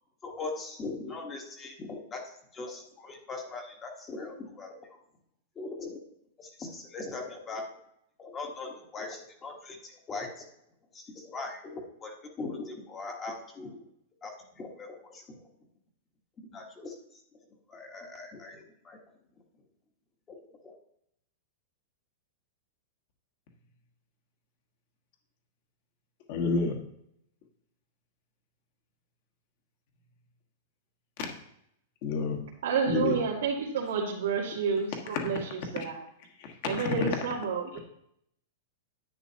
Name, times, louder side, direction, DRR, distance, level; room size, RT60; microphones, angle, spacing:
voice 1, 0.2-2.2 2.5-4.8 5.6-6.0 6.4-7.6 8.2-10.3 10.9-13.8 14.2-15.2 16.5-16.9 17.7-19.0 20.3-20.4 20.6-20.7, left 3 dB, 15° left, 1 dB, 1.2 m, -40 dB
voice 2, 26.3-26.7 32.0-32.4 32.9-33.1 36.4-37.2, left 4 dB, 40° left, 3 dB, 1.5 m, -29 dB
voice 3, 32.6-36.0 36.6-37.8, right 6 dB, 85° right, -5 dB, 2.1 m, -30 dB
10.5 x 9.2 x 2.8 m, 0.75 s
supercardioid pair, 170°, 0 cm